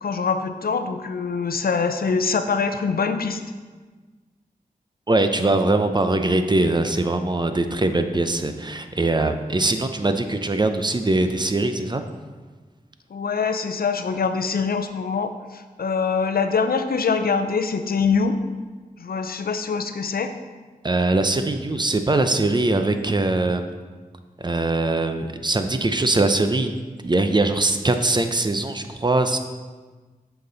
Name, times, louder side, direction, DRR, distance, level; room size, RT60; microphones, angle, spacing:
voice 1, 0.0-3.4 13.1-18.4 19.0-20.3, left 5 dB, 75° left, 8 dB, 0.5 m, -24 dB
voice 2, 5.1-12.0 20.8-23.7 24.4-26.7 27.0-29.4, right 2 dB, 30° right, 8 dB, 0.6 m, -22 dB
8.4 x 5.9 x 4.0 m, 1.4 s
wide cardioid pair, 65°, 15 cm